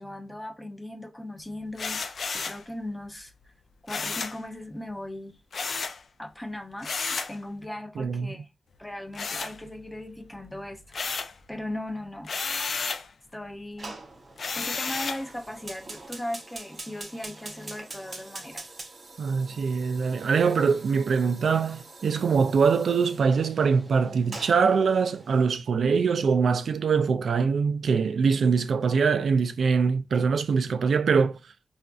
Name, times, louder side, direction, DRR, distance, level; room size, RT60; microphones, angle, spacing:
voice 1, 0.0-3.5 3.8-5.8 6.2-8.5 8.8-10.8 11.5-12.3 13.3-13.9 14.6-18.7, left 1 dB, 10° left, 0.6 m, -38 dB
sound 1, 1.8-2.6 3.9-4.4 5.5-6.0 6.8-7.4 9.1-10.0 10.4-11.4 12.2-13.1 14.4-15.3, left 4 dB, 65° left, 0.4 m, -32 dB
voice 2, 8.0-8.3 19.2-31.4, right 5 dB, 75° right, 0.3 m, -23 dB
Fire, 13.8-25.5, right 3 dB, 45° right, 0.7 m, -45 dB
3.7 x 2.5 x 2.2 m
cardioid pair, 80°, 0 cm